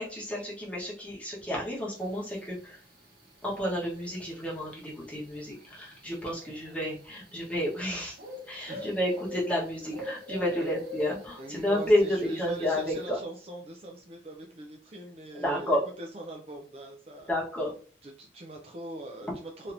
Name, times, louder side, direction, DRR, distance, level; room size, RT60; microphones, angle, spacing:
voice 1, 0.0-2.8 3.4-8.2 8.5-13.2 15.3-15.8 17.3-17.7, left 1 dB, 5° left, -5 dB, 1.0 m, -30 dB
sound 1, 2.0-13.0, left 2 dB, 75° right, 0.9 m, -45 dB
voice 2, 11.4-17.3 18.0-19.7, right 1 dB, 35° right, 2 dB, 0.4 m, -42 dB
3.3 x 2.8 x 2.5 m, 0.40 s
head